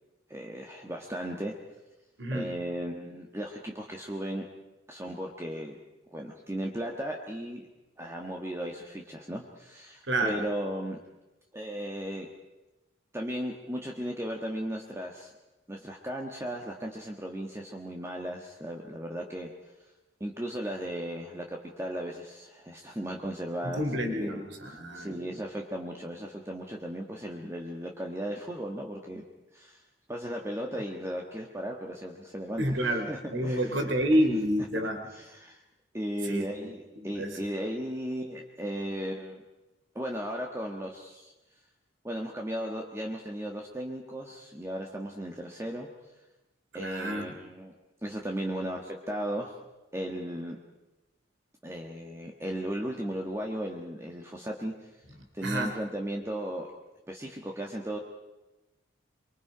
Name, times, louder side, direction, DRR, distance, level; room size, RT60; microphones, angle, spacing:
voice 1, 0.3-1.5 2.3-4.4 4.9-5.8 6.1-7.6 8.0-11.0 11.5-12.3 13.1-15.3 15.7-19.5 20.2-29.2 29.5-29.8 30.1-33.9 35.1-35.6 35.9-39.4 39.9-41.3 42.0-45.9 46.7-47.7 48.0-49.6 49.9-50.6 51.6-54.7 55.3-56.7 57.1-58.0, equal, 15° right, 1 dB, 1.4 m, -36 dB
voice 2, 2.2-2.5 10.1-10.4 23.6-25.4 32.6-35.0 36.2-36.7 37.1-37.4 46.7-47.4 55.4-55.8, equal, 65° right, 5 dB, 3.1 m, -29 dB
24.0 x 24.0 x 5.1 m, 1.0 s
head